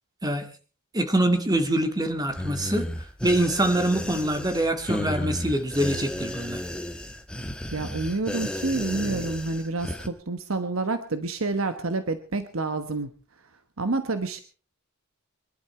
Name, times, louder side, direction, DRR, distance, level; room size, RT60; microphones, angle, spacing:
voice 1, 0.9-2.9 3.2-6.6, right 1 dB, 20° right, 7 dB, 2.2 m, -24 dB
sound 1, 2.3-10.1, left 1 dB, 5° left, 1.5 m, -33 dB
voice 2, 7.7-13.1 13.8-14.4, right 3 dB, 75° right, 10 dB, 1.2 m, -28 dB
23.5 x 12.0 x 4.4 m, 0.37 s
head